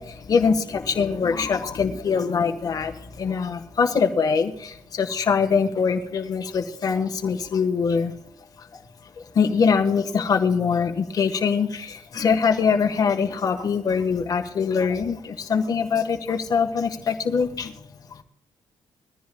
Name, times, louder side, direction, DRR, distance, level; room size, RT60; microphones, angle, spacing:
voice 1, 0.0-8.1 8.6-8.8 9.2-17.8 18.1-18.2, left 5 dB, 40° left, 4 dB, 1.4 m, -23 dB
21.5 x 14.5 x 2.3 m, 0.83 s
wide cardioid pair, 170°, 10 cm